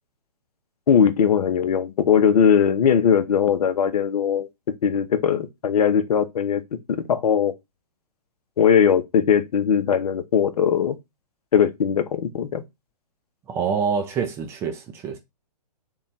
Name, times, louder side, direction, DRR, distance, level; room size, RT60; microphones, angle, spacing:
voice 1, 0.9-4.5 4.8-6.6 7.1-7.5 8.6-11.0 11.5-12.6, left 8 dB, 65° left, 0.6 m, -19 dB
voice 2, 13.5-15.2, right 6 dB, 10° right, 0.4 m, -26 dB
3.1 x 2.3 x 3.8 m
figure-of-eight pair, 125°, 21 cm